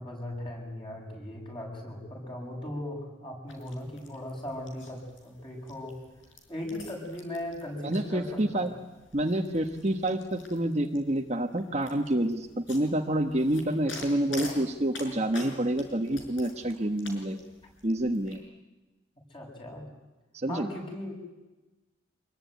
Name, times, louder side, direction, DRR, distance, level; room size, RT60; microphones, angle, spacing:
voice 1, 0.0-6.0 6.5-8.7 19.3-19.9 20.5-21.1, left 1 dB, 25° left, 0 dB, 7.9 m, -38 dB
sound 1, 3.5-18.4, left 3 dB, 80° left, 6.2 m, -48 dB
voice 2, 7.8-8.7 9.1-17.4 17.8-18.4 20.3-20.7, right 1 dB, 35° right, 4 dB, 1.3 m, -28 dB
26.0 x 22.0 x 9.4 m, 1.1 s
head